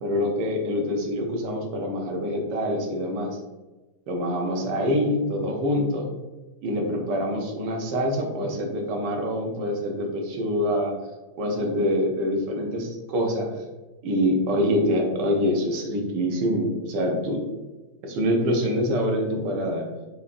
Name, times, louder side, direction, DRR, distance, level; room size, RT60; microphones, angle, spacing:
voice 1, 0.0-3.4 4.1-6.1 6.6-10.9 11.4-13.5 14.0-17.4 18.0-19.8, equal, 70° right, 1 dB, 1.4 m, -25 dB
4.9 x 2.5 x 2.5 m, 1.2 s
omnidirectional pair, 2.0 m